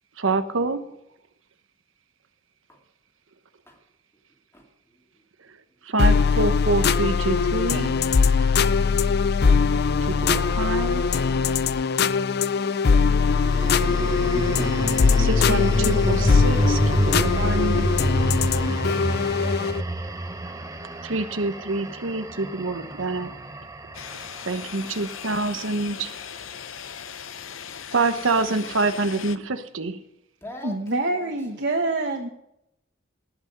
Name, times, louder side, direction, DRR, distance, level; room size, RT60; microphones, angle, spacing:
voice 1, 0.2-0.9 5.8-8.0 10.1-11.1 15.2-17.9 18.6-18.7 21.0-23.4 24.4-26.1 27.9-30.0, right 3 dB, 85° right, 10 dB, 1.1 m, -26 dB
voice 2, 4.5-5.8 9.7-10.4 30.4-31.3, left 1 dB, 15° left, 0 dB, 2.7 m, -45 dB
sound 1, 6.0-19.8, left 5 dB, 55° left, 0.5 m, -21 dB
sound 2, 9.1-11.6 13.2-25.5, right 1 dB, 15° right, 0.9 m, -28 dB
sound 3, 23.9-29.4, left 8 dB, 85° left, 0.8 m, -38 dB
voice 3, 30.6-32.3, right 2 dB, 60° right, 1 dB, 1.3 m, -26 dB
18.5 x 6.2 x 9.3 m, 0.82 s
head